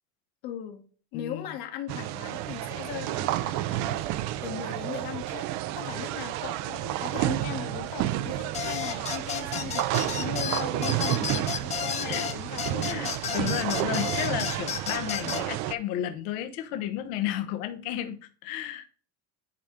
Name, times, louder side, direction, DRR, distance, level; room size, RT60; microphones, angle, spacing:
voice 1, 0.4-0.8 1.1-5.5 5.8-13.1 15.2-15.3, left 10 dB, 60° left, 4 dB, 1.5 m, -39 dB
voice 2, 1.1-1.5 11.0-11.3 12.0-12.2 12.8-18.9, left 12 dB, 80° left, 6 dB, 1.2 m, -33 dB
sound 1, 1.9-15.7, right 14 dB, 45° right, 0.4 m, -31 dB
sound 2, 8.5-15.4, left 8 dB, 15° left, 0.5 m, -32 dB
10.5 x 4.4 x 3.8 m, 0.40 s
cardioid pair, 165°, 42 cm